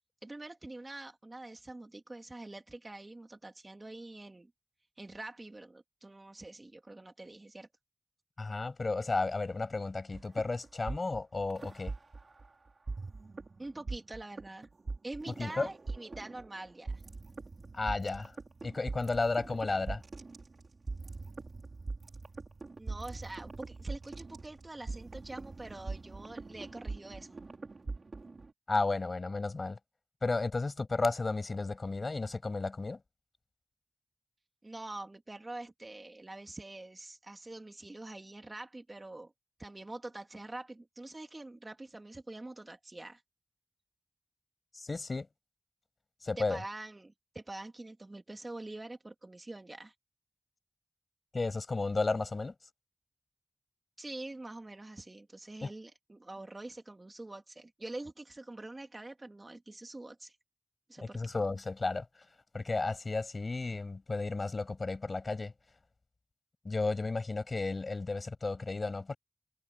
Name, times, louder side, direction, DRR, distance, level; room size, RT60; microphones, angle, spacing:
voice 1, 0.2-4.5 5.0-7.7 13.6-14.7 15.0-17.0 22.8-27.5 34.6-39.3 39.6-43.2 46.4-49.9 54.0-60.4 60.9-61.2, right 2 dB, 40° right, 3.1 m, -45 dB
voice 2, 8.4-11.9 15.4-15.7 17.7-18.4 18.6-20.0 28.7-29.8 30.2-33.0 44.7-45.3 46.2-46.6 51.3-52.5 55.6-55.7 61.1-62.3 62.5-65.5 66.6-69.2, left 3 dB, 60° left, 7.3 m, -33 dB
sound 1, 10.1-12.5 12.9-28.5, right 3 dB, 70° right, 3.2 m, -42 dB
cardioid pair, 45°, 0 cm